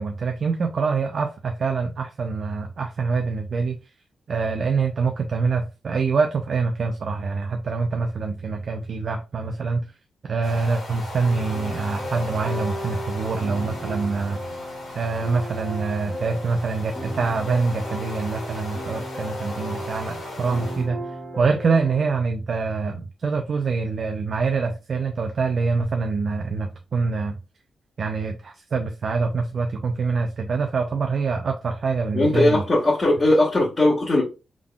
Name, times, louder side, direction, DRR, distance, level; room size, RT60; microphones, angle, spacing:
voice 1, 0.0-3.8 4.3-9.9 10.2-14.6 14.9-27.4 28.0-32.6, right 4 dB, 60° right, 0.4 m, -25 dB
sound 1, 10.4-20.9, left 2 dB, 85° left, 1.6 m, -38 dB
sound 2, 11.2-22.2, equal, 10° left, 1.7 m, -36 dB
voice 2, 32.1-34.2, left 1 dB, 35° left, 1.5 m, -19 dB
3.6 x 3.6 x 2.3 m
cardioid pair, 70°, 0 cm